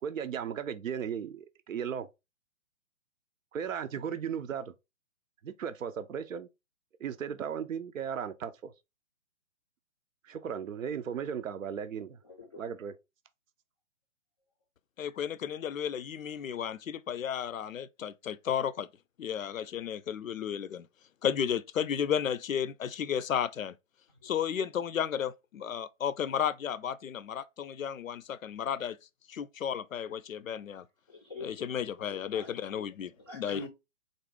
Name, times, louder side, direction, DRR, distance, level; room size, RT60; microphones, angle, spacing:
voice 1, 0.0-2.1 3.5-4.7 5.4-6.5 7.0-8.7 10.2-12.2 12.5-12.9, right 7 dB, 80° right, 0.6 m, -36 dB
voice 2, 12.3-12.6 31.1-31.5 32.1-32.8 33.2-33.7, left 3 dB, 20° left, 0.4 m, -45 dB
voice 3, 15.0-18.9 19.2-20.9 21.2-23.7 24.2-29.0 29.3-30.8 31.4-33.6, left 8 dB, 80° left, 0.5 m, -33 dB
4.0 x 2.6 x 3.4 m
figure-of-eight pair, 130°, 39 cm